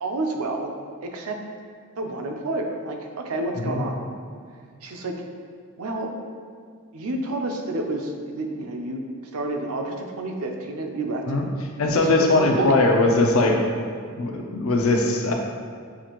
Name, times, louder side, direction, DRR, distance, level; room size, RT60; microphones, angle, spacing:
voice 1, 0.0-0.7 1.0-1.4 2.0-4.0 4.8-5.1 5.8-6.1 6.9-9.0 9.3-11.4 12.0-12.8, right 2 dB, 80° right, 2 dB, 0.5 m, -29 dB
voice 2, 11.8-13.6 14.2-15.3, left 2 dB, 70° left, 2 dB, 0.6 m, -20 dB
7.0 x 2.5 x 3.0 m, 2.1 s
head